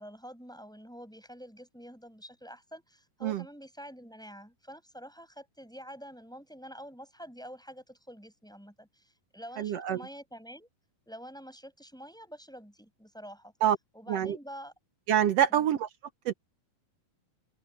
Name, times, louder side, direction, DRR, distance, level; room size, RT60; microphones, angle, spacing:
voice 1, 0.0-10.7 11.1-13.5 13.9-14.7 15.5-15.8, equal, ahead, 6.6 m, -47 dB
voice 2, 9.6-10.0 13.6-13.8 14.1-14.4 15.1-15.9 16.2-16.3, right 10 dB, 85° right, 1.4 m, -26 dB
open air
omnidirectional pair, 4.2 m